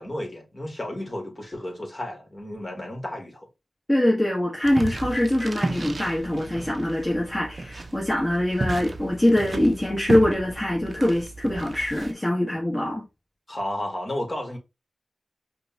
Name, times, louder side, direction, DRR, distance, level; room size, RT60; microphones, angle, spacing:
voice 1, 0.0-3.5 13.5-14.6, left 1 dB, 35° left, 1.9 m, -32 dB
voice 2, 3.9-13.0, left 1 dB, 20° left, 1.5 m, -23 dB
sound 1, 4.6-12.1, right 2 dB, 55° right, 0.7 m, -33 dB
5.0 x 2.4 x 2.9 m
cardioid pair, 45°, 0 cm